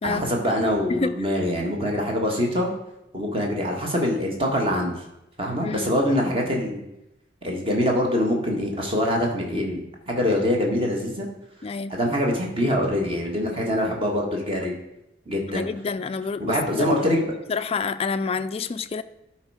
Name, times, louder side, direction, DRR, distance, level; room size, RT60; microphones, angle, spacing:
voice 1, 0.0-2.7 3.1-5.0 5.4-6.8 7.4-11.3 11.9-14.7 15.3-15.7 16.4-17.2, left 1 dB, 30° right, 1.7 m, -24 dB
voice 2, 11.6-12.0 15.5-17.1 17.5-19.0, left 4 dB, 30° left, 0.3 m, -28 dB
11.5 x 4.5 x 5.0 m
head